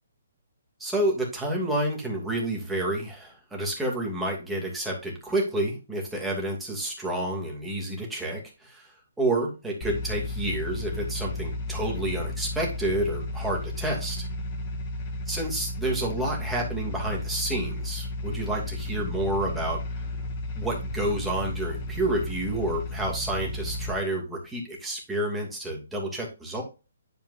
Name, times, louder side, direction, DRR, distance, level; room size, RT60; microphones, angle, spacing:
voice 1, 0.8-14.3 15.3-19.8 20.6-26.6, right 1 dB, 5° right, -2 dB, 2.6 m, -29 dB
sound 1, 9.8-23.9, left 1 dB, 35° left, 2.1 m, -33 dB
10.5 x 4.6 x 2.7 m, 0.30 s
hypercardioid pair, 145°, 0 cm